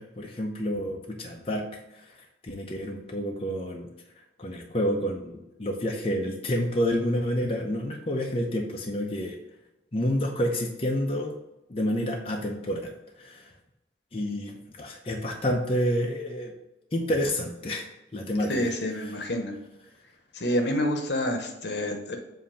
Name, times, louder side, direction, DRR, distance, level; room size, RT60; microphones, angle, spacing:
voice 1, 0.0-3.9 4.4-9.4 9.9-11.3 11.7-13.5 14.1-16.5 16.9-17.9 18.1-18.7, equal, 30° left, 0 dB, 0.7 m, -29 dB
voice 2, 18.5-19.6 20.3-22.2, left 1 dB, 65° left, 4 dB, 1.0 m, -28 dB
7.5 x 2.8 x 5.6 m, 0.96 s
head